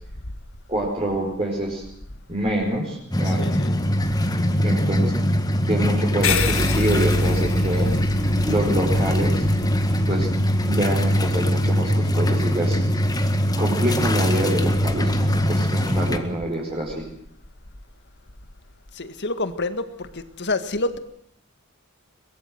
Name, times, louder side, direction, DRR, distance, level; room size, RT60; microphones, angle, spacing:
voice 1, 0.7-1.8 2.3-3.5 4.6-5.1 5.7-7.9 8.5-9.5 10.1-10.3 10.6-12.8 13.6-17.1, right 1 dB, 25° right, -3 dB, 5.0 m, -26 dB
sound 1, 3.1-16.2, equal, 20° left, 1.8 m, -22 dB
voice 2, 3.2-3.8 18.9-21.0, left 2 dB, 55° left, 11 dB, 1.8 m, -28 dB
sound 2, 6.2-11.1, left 4 dB, 70° left, 1.9 m, -29 dB
23.0 x 21.5 x 7.8 m, 0.67 s
head